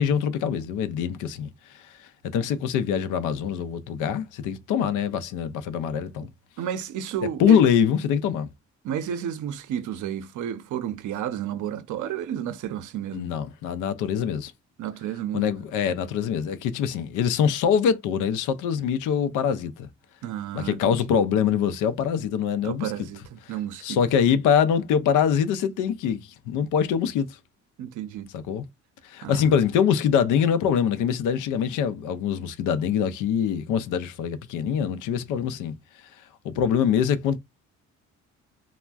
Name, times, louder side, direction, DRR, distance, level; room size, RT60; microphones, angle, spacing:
voice 1, 0.0-6.3 7.4-8.5 13.1-14.5 15.3-19.9 20.5-22.9 23.8-27.4 28.3-28.7 29.0-35.7 36.4-37.4, left 8 dB, 90° left, 0.5 m, -24 dB
voice 2, 6.6-7.6 8.8-13.3 14.8-15.5 20.2-21.0 22.6-24.0 27.8-28.3 29.2-29.5, right 10 dB, 75° right, 0.6 m, -32 dB
3.3 x 2.1 x 2.2 m
cardioid pair, 90°, 30 cm